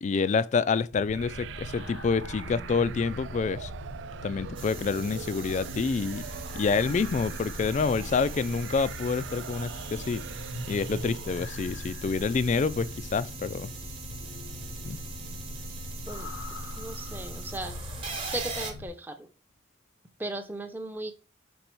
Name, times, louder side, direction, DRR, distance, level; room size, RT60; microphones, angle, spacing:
voice 1, 0.0-3.7 4.2-6.3 6.5-10.2 10.7-13.7 14.8-15.0, left 5 dB, 40° left, 0.3 m, -27 dB
sound 1, 0.9-18.9, left 1 dB, 90° left, 0.8 m, -41 dB
sound 2, 1.1-11.7, right 7 dB, 70° right, 0.3 m, -42 dB
sound 3, 4.5-18.7, right 5 dB, 30° right, 1.1 m, -42 dB
voice 2, 16.8-17.8 18.2-19.3 20.2-21.1, right 1 dB, 10° right, 0.6 m, -36 dB
5.3 x 4.1 x 4.5 m
head